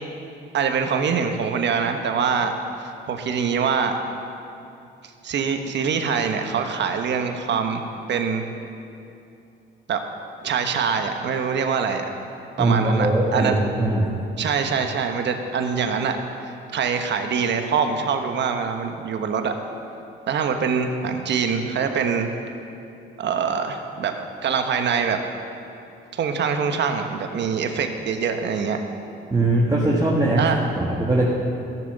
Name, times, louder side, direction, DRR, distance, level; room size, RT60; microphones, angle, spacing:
voice 1, 0.5-4.0 5.2-7.8 8.1-8.5 9.9-10.0 10.4-12.1 12.6-13.6 14.4-16.2 16.7-19.5 20.3-22.3 23.2-24.1 24.4-25.2 26.1-28.8 30.4-30.6, right 6 dB, 65° right, 6 dB, 1.2 m, -24 dB
voice 2, 12.6-14.1 29.3-30.4 30.8-31.3, right 2 dB, 20° right, -4 dB, 1.8 m, -20 dB
15.0 x 7.2 x 6.8 m, 2.6 s
cardioid pair, 90°, 20 cm